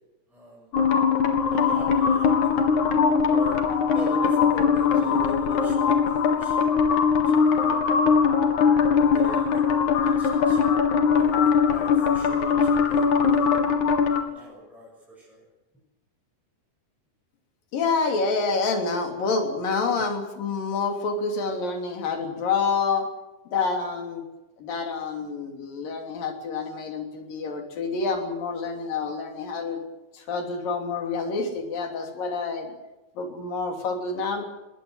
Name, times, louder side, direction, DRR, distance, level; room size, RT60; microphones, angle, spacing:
voice 1, 0.3-0.8 1.5-2.7 3.2-3.6 3.9-7.8 8.7-10.8 11.1-13.7 14.2-14.9 15.2-15.4, left 1 dB, ahead, -3 dB, 6.5 m, -42 dB
sound 1, 0.7-14.2, left 6 dB, 65° left, 3.4 m, -21 dB
voice 2, 17.7-23.1 23.5-24.2 24.6-29.9 30.1-32.7 33.2-34.4, left 4 dB, 90° left, 4 dB, 4.9 m, -28 dB
21.0 x 18.0 x 8.1 m, 1.0 s
omnidirectional pair, 3.8 m